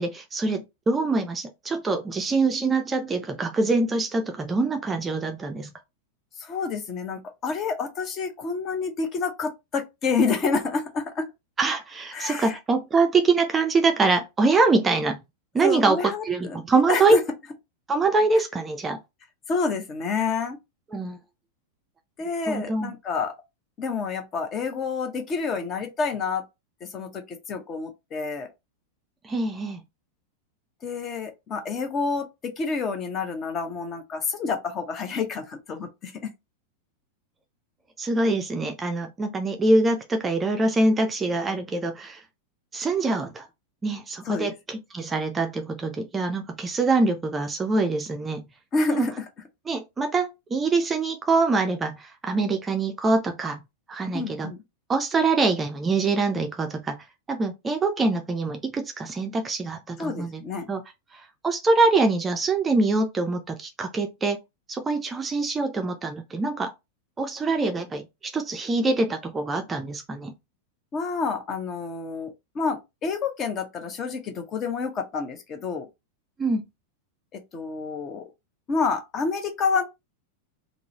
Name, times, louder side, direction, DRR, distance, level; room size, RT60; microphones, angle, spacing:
voice 1, 0.0-5.7 11.6-15.2 15.5-16.0 16.2-17.2 17.9-19.0 20.9-21.2 22.5-22.9 29.2-29.8 38.0-42.2 42.7-43.5 43.8-48.5 48.9-49.1 49.7-53.6 53.9-54.5 54.9-57.0 57.3-60.4 60.7-60.8 61.4-64.4 64.7-66.7 67.2-70.3 76.4-76.6, right 3 dB, 15° right, 0.5 m, -24 dB
voice 2, 6.4-11.3 12.1-12.6 15.6-17.2 18.4-18.5 19.5-20.6 22.2-23.3 23.8-26.4 26.8-28.5 30.8-36.3 44.2-44.5 48.7-49.2 54.1-54.6 60.0-60.7 70.9-75.9 77.3-78.2 78.7-79.8, left 4 dB, 30° left, 0.7 m, -28 dB
3.7 x 2.1 x 2.8 m
figure-of-eight pair, 90°, 0 cm